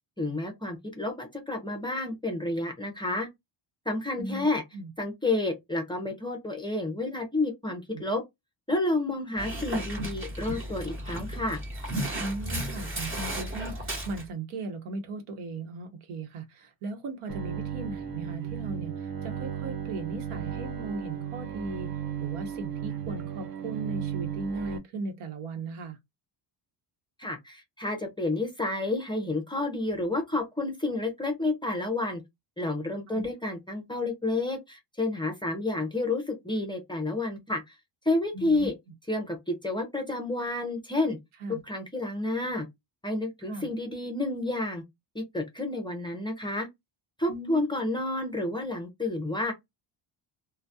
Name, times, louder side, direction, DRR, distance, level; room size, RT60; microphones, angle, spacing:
voice 1, 0.2-3.3 3.9-4.6 5.0-8.2 8.7-11.6 27.2-32.2 32.6-37.6 38.1-38.7 39.1-41.2 41.6-42.7 43.0-44.8 45.1-46.7 47.2-49.5, left 2 dB, 10° left, 0.5 m, -30 dB
Dog, 9.4-14.3, right 1 dB, 25° right, 1.0 m, -34 dB
voice 2, 12.1-21.9 22.2-26.0 33.1-33.3 38.3-38.7 41.4-41.6 43.5-43.7 47.3-47.6, right 3 dB, 85° right, 0.9 m, -37 dB
Bowed string instrument, 17.3-24.8, right 9 dB, 45° right, 0.5 m, -35 dB
2.2 x 2.1 x 2.6 m
cardioid pair, 130°, 49 cm